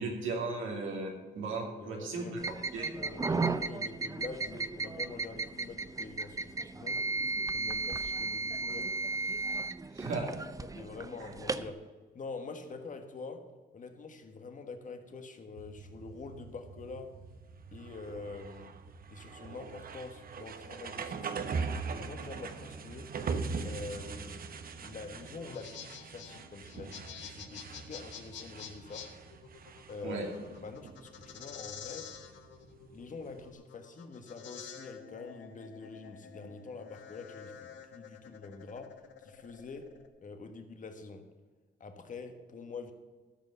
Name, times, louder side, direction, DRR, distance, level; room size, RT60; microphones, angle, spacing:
voice 1, 0.0-2.4 2.7-2.9 9.9-10.4 30.0-30.2, right 3 dB, 80° right, -1 dB, 2.4 m, -36 dB
voice 2, 1.5-2.5 3.0-7.0 7.5-8.9 10.6-11.8 12.1-13.4 13.7-17.1 17.7-18.7 19.1-21.6 22.0-23.1 23.6-24.4 24.8-29.1 29.9-30.2 30.6-32.1 32.9-39.0 39.2-39.9 40.2-41.3 41.8-42.9, left 4 dB, 40° left, 6 dB, 1.4 m, -45 dB
sound 1, 2.4-11.7, right 3 dB, 15° right, 0.5 m, -35 dB
sound 2, 15.6-33.5, right 5 dB, 45° right, 0.9 m, -42 dB
sound 3, 25.3-40.1, left 8 dB, 65° left, 1.2 m, -49 dB
13.5 x 5.3 x 6.8 m, 1.4 s
cardioid pair, 90°, 20 cm